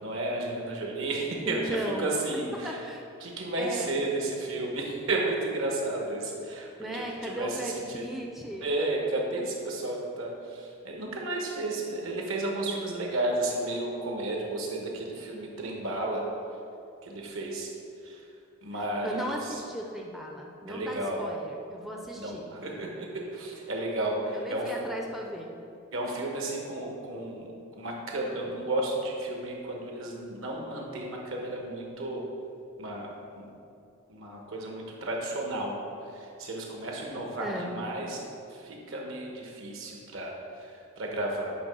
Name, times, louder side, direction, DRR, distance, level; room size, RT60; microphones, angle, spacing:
voice 1, 0.0-2.8 3.2-8.0 8.6-16.3 17.0-17.7 18.0-18.2 18.6-19.6 20.7-21.3 22.2-24.7 25.9-27.5 27.8-32.2 32.8-33.5 34.1-35.8 36.1-38.2 38.5-41.5, right 2 dB, 70° right, -1 dB, 1.1 m, -33 dB
voice 2, 1.5-2.1 2.3-3.1 3.6-3.9 6.8-8.7 19.0-22.5 24.3-25.6 37.4-37.7, equal, ahead, -1 dB, 0.4 m, -36 dB
7.9 x 3.1 x 5.3 m, 2.6 s
head